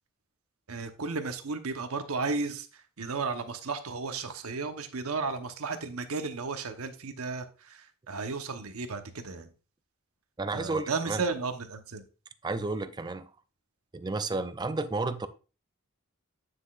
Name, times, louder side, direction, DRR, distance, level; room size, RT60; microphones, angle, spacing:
voice 1, 0.7-2.7 3.0-9.5 10.5-12.0, right 4 dB, 80° right, 1.0 m, -34 dB
voice 2, 10.4-11.2 12.4-13.3 13.9-15.3, right 3 dB, 20° right, 0.4 m, -32 dB
9.6 x 6.2 x 2.4 m
head